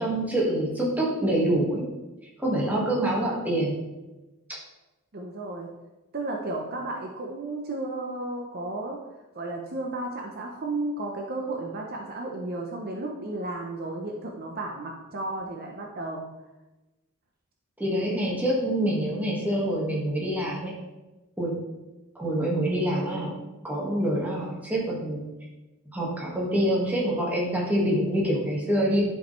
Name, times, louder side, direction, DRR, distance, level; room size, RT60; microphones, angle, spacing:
voice 1, 0.0-1.9 2.4-3.8 17.8-20.7 21.4-21.5 22.2-23.3 23.6-25.2 25.9-29.0, right 1 dB, 10° right, -4 dB, 1.8 m, -26 dB
voice 2, 5.1-5.7 6.1-9.0 9.3-16.3, right 2 dB, 45° right, 1 dB, 0.8 m, -33 dB
11.0 x 5.2 x 3.2 m, 1.1 s
head